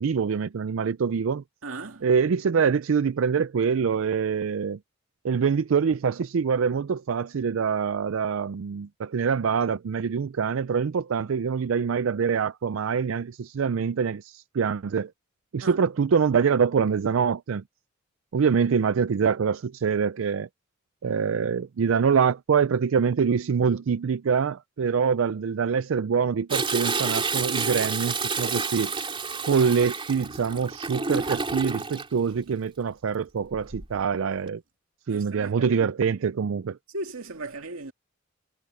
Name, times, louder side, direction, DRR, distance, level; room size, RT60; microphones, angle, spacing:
voice 1, 0.0-1.4 2.0-4.8 5.2-15.1 15.5-17.6 18.3-20.5 21.0-28.9 29.5-34.6 35.1-36.8, right 6 dB, 70° right, 0.4 m, -25 dB
voice 2, 1.6-2.1 15.6-15.8 35.1-35.8 36.9-37.9, right 2 dB, 85° right, 2.2 m, -37 dB
Toilet flush, 26.5-32.1 33.5-34.0 34.5-34.6, right 4 dB, 25° right, 3.2 m, -29 dB
head